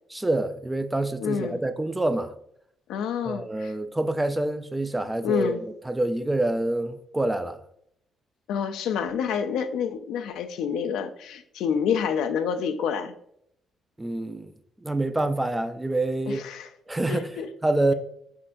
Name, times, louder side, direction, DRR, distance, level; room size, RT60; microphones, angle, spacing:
voice 1, 0.1-2.3 3.3-5.6 5.9-7.6 14.0-14.5 14.8-16.5 16.9-17.3 17.6-17.9, right 2 dB, 10° right, 0.4 m, -26 dB
voice 2, 1.2-1.6 2.9-3.7 5.2-5.6 8.5-13.1 16.3-16.7 17.1-17.5, left 7 dB, 85° left, 0.4 m, -28 dB
5.5 x 3.7 x 2.5 m
cardioid pair, 90°, 0 cm